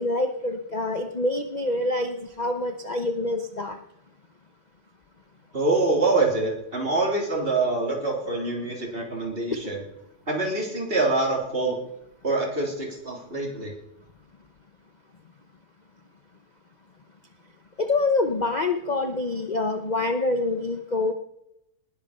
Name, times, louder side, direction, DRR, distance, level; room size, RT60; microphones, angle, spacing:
voice 1, 0.0-3.8 17.8-21.1, left 2 dB, 35° left, 6 dB, 0.9 m, -26 dB
voice 2, 5.5-9.8 10.3-11.8 12.2-13.7, right 3 dB, 35° right, 0 dB, 3.8 m, -25 dB
19.5 x 8.6 x 6.7 m, 0.82 s
omnidirectional pair, 1.7 m